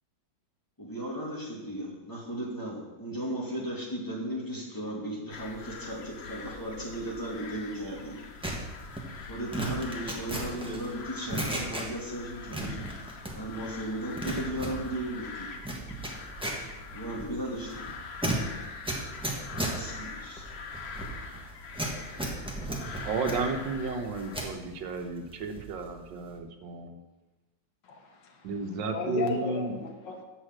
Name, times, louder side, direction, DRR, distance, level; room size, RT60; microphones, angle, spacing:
voice 1, 0.8-8.8 9.3-15.5 16.9-17.8 19.7-20.5, right 1 dB, 10° left, -4 dB, 1.9 m, -36 dB
sound 1, 5.3-24.5, left 4 dB, 55° left, 0.7 m, -43 dB
sound 2, 8.4-12.2 12.5-13.7 13.9-24.6 25.0-25.8 26.1-26.4, right 1 dB, 5° right, 1.1 m, -35 dB
voice 2, 23.0-27.0 28.4-29.8, right 4 dB, 90° right, 6 dB, 1.6 m, -33 dB
voice 3, 27.8-28.5 28.9-30.2, left 5 dB, 85° left, 4 dB, 1.8 m, -35 dB
6.5 x 6.2 x 7.4 m, 1.2 s
omnidirectional pair, 1.9 m